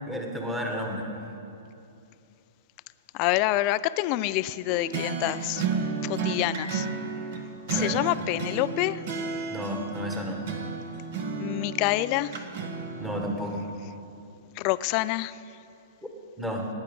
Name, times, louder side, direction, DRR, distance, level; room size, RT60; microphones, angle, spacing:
voice 1, 0.1-1.0 7.7-8.0 9.5-10.4 13.0-13.6 16.4-16.6, equal, 5° right, 0 dB, 1.6 m, -32 dB
voice 2, 3.1-5.7 6.0-6.9 7.7-9.0 11.4-12.4 14.6-15.4, left 16 dB, 35° left, 16 dB, 0.4 m, -27 dB
sound 1, 4.7-13.3, right 5 dB, 55° right, 1.5 m, -33 dB
18.0 x 9.9 x 5.4 m, 2.7 s
hypercardioid pair, 155°, 0 cm